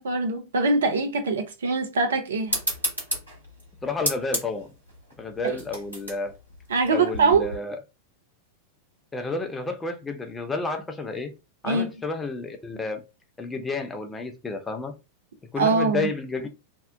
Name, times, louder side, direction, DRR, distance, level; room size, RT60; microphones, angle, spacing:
voice 1, 0.0-2.6 5.4-5.6 6.7-7.5 11.6-11.9 15.6-16.1, right 3 dB, 65° right, 0.6 m, -23 dB
sound 1, 2.5-7.6, right 1 dB, 85° right, 1.2 m, -32 dB
voice 2, 3.8-4.7 5.2-6.3 6.9-7.8 9.1-11.4 11.6-13.0 13.4-14.9 15.5-16.5, left 3 dB, 15° left, 0.6 m, -31 dB
2.7 x 2.1 x 2.4 m
figure-of-eight pair, 90°, 0 cm